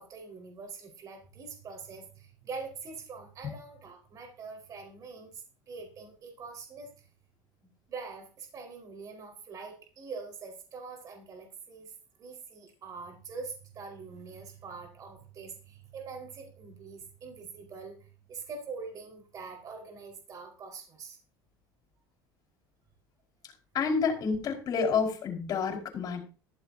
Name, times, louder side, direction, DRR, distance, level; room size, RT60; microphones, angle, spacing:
voice 1, 0.0-6.9 7.6-11.9 12.2-21.2, right 4 dB, 40° right, 3 dB, 4.7 m, -44 dB
voice 2, 23.7-26.2, left 5 dB, 45° left, 2 dB, 5.3 m, -29 dB
15.5 x 13.0 x 2.8 m, 0.35 s
supercardioid pair, 120°, 9 cm